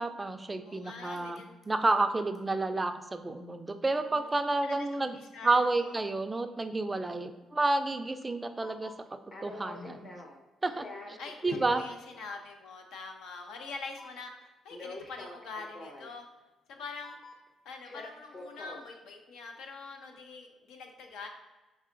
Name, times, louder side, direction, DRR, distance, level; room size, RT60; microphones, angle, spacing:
voice 1, 0.0-5.2 5.4-8.9 9.4-10.1 10.6-11.2 11.4-11.8, right 2 dB, 20° right, 8 dB, 0.3 m, -30 dB
voice 2, 0.6-1.5 4.0-4.3 4.6-5.9 11.2-16.3 16.7-17.4 17.6-21.3, left 4 dB, 85° left, 3 dB, 0.6 m, -44 dB
sound 1, 1.2-1.4 1.6-1.9 2.3-2.4 4.3-4.4 8.2-8.3 8.6-10.4 10.6-11.8 14.0-14.4 14.7-16.1 17.0-17.5 17.8-18.9, left 2 dB, 45° left, 0.9 m, -45 dB
5.5 x 3.6 x 2.5 m, 1.2 s
cardioid pair, 90°, 0 cm